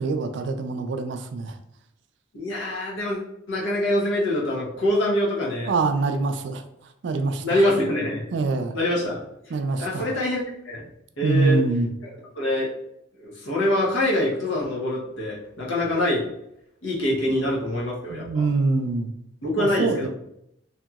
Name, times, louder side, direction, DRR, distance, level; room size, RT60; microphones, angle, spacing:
voice 1, 0.0-1.6 5.7-6.6 7.0-7.6 8.3-8.7 9.5-10.1 11.2-11.9 17.3-17.4 18.1-19.1 19.6-20.1, right 3 dB, 65° right, 7 dB, 0.3 m, -24 dB
voice 2, 2.3-3.2 3.5-5.7 7.4-8.3 8.7-9.2 9.8-10.8 11.2-11.6 12.0-12.7 13.2-16.3 16.8-18.4 19.4-20.1, left 1 dB, 80° left, -4 dB, 0.9 m, -25 dB
2.9 x 2.7 x 2.3 m, 0.78 s
head